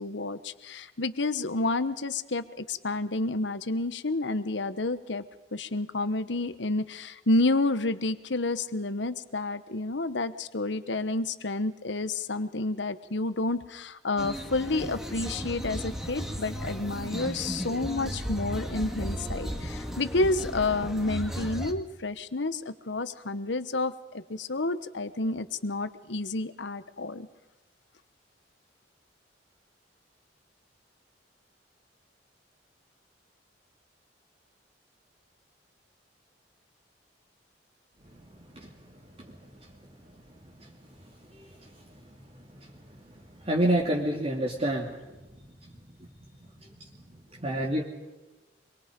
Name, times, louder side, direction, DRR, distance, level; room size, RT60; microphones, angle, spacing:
voice 1, 0.0-5.2 5.5-27.3, left 2 dB, 75° left, 13 dB, 1.2 m, -30 dB
sound 1, 14.2-21.7, equal, 5° right, 2.3 m, -35 dB
voice 2, 43.4-44.9 47.4-47.8, right 1 dB, 35° right, -2 dB, 2.7 m, -27 dB
26.0 x 23.5 x 5.3 m, 1.1 s
head